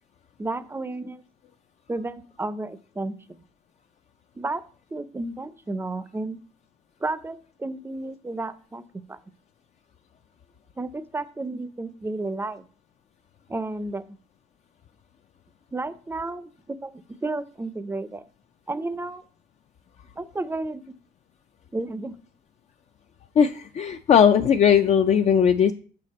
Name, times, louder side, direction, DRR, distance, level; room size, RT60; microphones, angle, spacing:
voice 1, 0.4-1.2 1.9-3.2 4.4-4.6 4.9-6.4 7.0-8.8 9.1-9.2 10.8-12.7 13.5-14.0 15.7-16.9 17.2-18.2 18.7-19.2 20.2-20.9 21.7-22.2, right 2 dB, 15° right, 14 dB, 0.5 m, -32 dB
voice 2, 23.3-25.7, left 7 dB, 40° left, 7 dB, 0.4 m, -18 dB
6.7 x 5.7 x 4.2 m, 0.41 s
cardioid pair, 110°, 17 cm